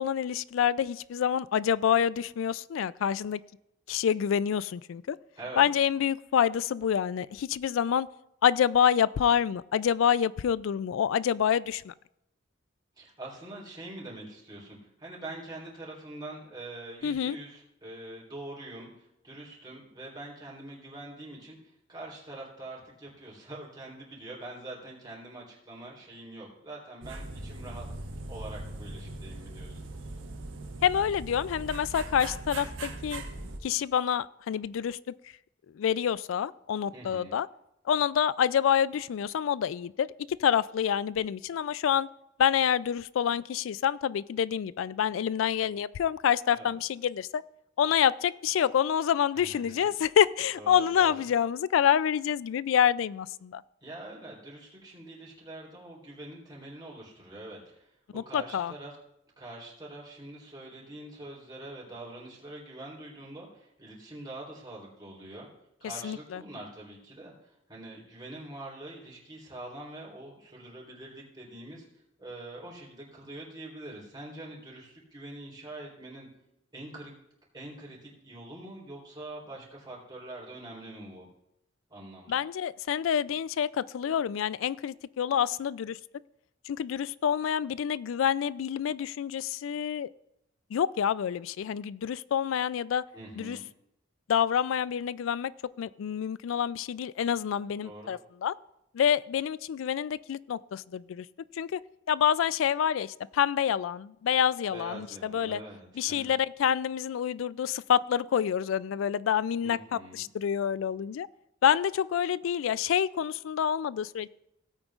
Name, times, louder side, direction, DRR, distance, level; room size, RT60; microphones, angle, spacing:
voice 1, 0.0-3.4 3.9-5.2 5.6-8.1 8.4-11.9 17.0-17.4 30.8-33.2 33.6-35.1 35.7-37.5 37.9-42.1 42.4-47.4 47.8-53.6 58.1-58.7 66.0-66.4 82.3-86.0 86.7-90.1 90.7-93.1 93.4-93.6 94.3-95.5 95.8-98.6 98.9-101.3 101.5-101.8 102.1-105.6 106.0-111.3 111.6-114.3, left 8 dB, 85° left, 19 dB, 0.3 m, -27 dB
voice 2, 13.0-21.6 21.9-27.8 28.3-29.9 36.9-37.3 46.5-46.7 49.3-49.8 50.6-51.2 53.8-58.9 59.4-65.5 65.8-71.8 72.2-76.3 76.7-77.1 77.5-81.3 81.9-82.4 93.1-93.7 97.8-98.1 104.7-106.3 109.6-110.2, right 2 dB, 20° right, -4 dB, 3.4 m, -44 dB
sound 1, 27.0-33.6, right 2 dB, 75° right, 1.2 m, -40 dB
17.0 x 8.9 x 2.4 m, 0.83 s
head